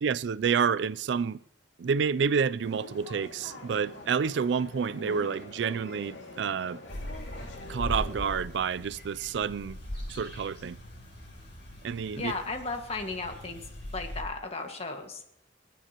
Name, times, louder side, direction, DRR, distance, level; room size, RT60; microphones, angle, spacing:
voice 1, 0.0-1.4 1.8-6.8 7.7-9.8 10.1-10.8 11.8-12.3, right 6 dB, 70° right, 0.4 m, -29 dB
sound 1, 2.6-8.4, left 1 dB, 80° left, 2.3 m, -45 dB
sound 2, 6.9-14.2, left 1 dB, 60° left, 6.0 m, -40 dB
voice 2, 12.2-13.6 13.9-15.2, left 3 dB, 35° left, 1.6 m, -35 dB
27.5 x 9.3 x 2.9 m
head